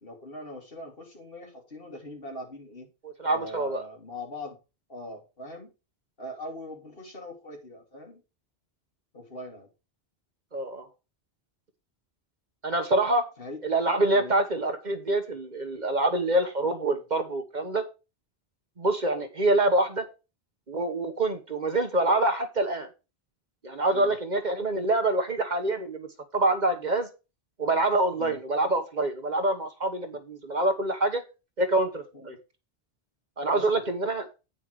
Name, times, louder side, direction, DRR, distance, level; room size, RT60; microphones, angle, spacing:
voice 1, 0.0-2.9 3.2-4.6 4.9-5.7 6.2-8.2 9.1-9.7 13.4-13.6 14.1-14.3 23.9-24.2 28.2-28.4 32.1-32.3 33.5-33.8, left 1 dB, 60° left, 1 dB, 3.1 m, -41 dB
voice 2, 3.2-3.8 10.5-10.9 12.6-13.3 13.6-17.8 18.8-20.0 20.7-22.9 23.6-27.1 27.6-31.2 31.6-32.4 33.4-34.3, right 2 dB, 45° right, 7 dB, 1.3 m, -26 dB
9.3 x 5.8 x 4.7 m, 0.29 s
omnidirectional pair, 1.1 m